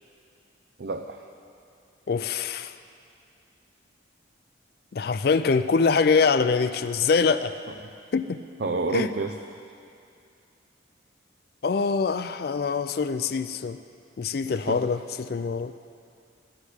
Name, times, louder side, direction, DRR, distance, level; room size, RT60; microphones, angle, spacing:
voice 1, 0.8-1.2 7.7-7.9 8.6-9.4 14.5-15.0, right 3 dB, 60° right, 4 dB, 0.5 m, -30 dB
voice 2, 2.1-2.7 4.9-7.6 8.1-8.4 8.9-9.1 11.6-13.8 14.2-15.7, left 5 dB, 55° left, 11 dB, 0.4 m, -24 dB
13.5 x 6.6 x 9.8 m, 2.5 s
head